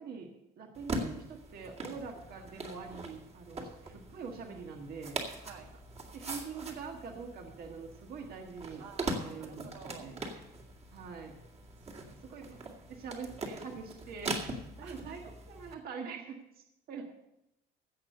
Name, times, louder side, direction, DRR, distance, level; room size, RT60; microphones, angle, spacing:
voice 1, 0.0-5.2 6.1-8.9 9.2-10.2 10.9-11.4 12.1-14.4 14.8-15.2 15.5-17.1, right 5 dB, 55° right, 2 dB, 1.7 m, -44 dB
sound 1, 0.7-15.7, right 2 dB, 35° right, 2.1 m, -42 dB
voice 2, 8.8-10.2 11.7-12.2 14.8-15.4 16.9-17.0, right 6 dB, 85° right, 2 dB, 2.3 m, -51 dB
16.0 x 6.3 x 6.7 m, 0.86 s
cardioid pair, 135°, 19 cm